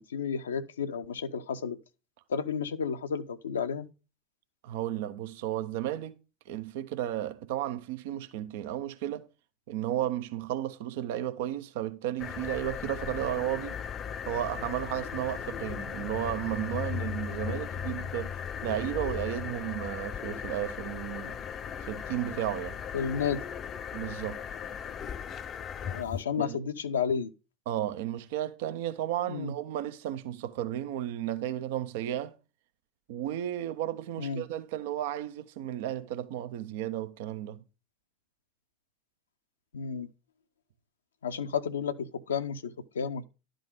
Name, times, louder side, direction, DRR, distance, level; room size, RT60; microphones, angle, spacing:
voice 1, 0.0-1.8 2.3-3.9 22.9-23.4 25.8-27.3 29.3-29.5 34.2-34.4 39.7-40.1 41.2-43.2, left 6 dB, 75° left, 0.6 m, -32 dB
voice 2, 4.6-6.1 6.5-9.3 9.7-13.8 14.3-21.4 21.8-22.8 23.9-24.4 26.4-26.6 27.7-32.3 33.1-37.6, right 12 dB, 60° right, 0.7 m, -33 dB
sound 1, 12.2-26.2, left 8 dB, 30° left, 0.5 m, -37 dB
11.0 x 3.8 x 6.5 m
figure-of-eight pair, 80°, 0 cm